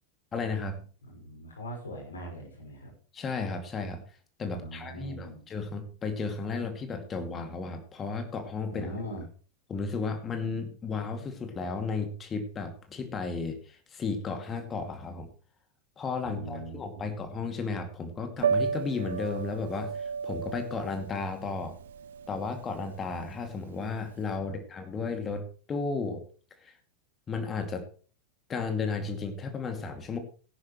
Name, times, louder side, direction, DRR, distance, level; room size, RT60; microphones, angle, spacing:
voice 1, 0.3-0.8 3.1-4.0 4.4-8.9 9.7-15.3 16.0-21.8 22.3-26.2 26.6-26.7 27.3-27.9 28.5-30.2, left 4 dB, 20° left, 6 dB, 2.4 m, -34 dB
voice 2, 1.0-2.9 4.5-5.4 8.7-9.2 16.2-17.1 24.4-24.6, right 1 dB, 70° left, 0 dB, 5.6 m, -41 dB
Piano, 18.4-24.3, right 6 dB, 60° right, 0.7 m, -33 dB
17.5 x 11.0 x 3.2 m, 0.39 s
figure-of-eight pair, 90°, 0 cm